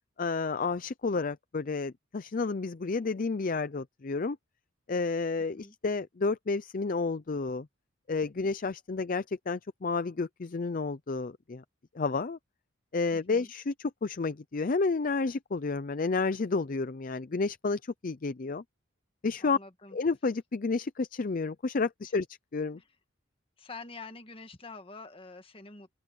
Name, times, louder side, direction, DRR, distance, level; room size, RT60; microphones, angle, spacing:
voice 1, 0.2-4.4 4.9-7.7 8.1-11.6 11.9-12.4 12.9-18.6 19.2-19.6 19.9-22.3 22.5-22.8, left 4 dB, 45° left, 0.5 m, -31 dB
voice 2, 13.1-13.5 19.4-20.0 22.8-22.9 23.6-25.9, left 3 dB, 25° left, 1.7 m, -46 dB
open air
head